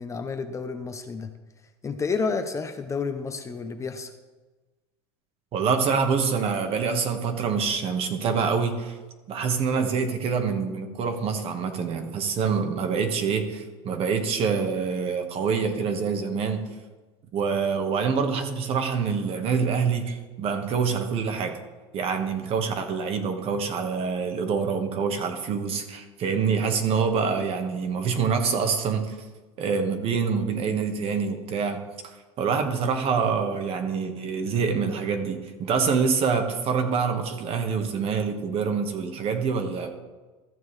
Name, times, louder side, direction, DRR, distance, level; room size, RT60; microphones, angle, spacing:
voice 1, 0.0-1.3 1.8-4.1, left 4 dB, 20° left, 7 dB, 0.7 m, -30 dB
voice 2, 5.5-9.0 9.3-16.6 17.3-21.6 21.9-29.2 29.6-39.9, right 5 dB, 45° right, 6 dB, 1.4 m, -26 dB
14.0 x 6.9 x 3.2 m, 1.2 s
supercardioid pair, 110°, 14 cm